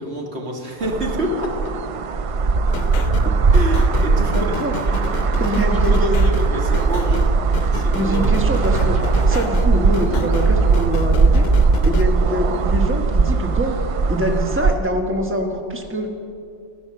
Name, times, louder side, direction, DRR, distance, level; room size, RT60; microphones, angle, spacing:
voice 1, 0.0-1.5 3.5-4.6 4.9-5.0 5.5-7.4 7.7-8.3, equal, 90° right, 0 dB, 2.1 m, -28 dB
sound 1, 0.8-14.7, right 4 dB, 65° right, 0.3 m, -18 dB
sound 2, 2.7-12.0, left 8 dB, 75° left, 0.8 m, -31 dB
voice 2, 3.0-3.3 4.3-4.7 5.4-6.3 7.9-9.0 9.3-11.5 11.8-13.8 14.1-16.1, equal, 10° right, 3 dB, 1.2 m, -24 dB
15.5 x 11.5 x 6.7 m, 2.4 s
omnidirectional pair, 1.1 m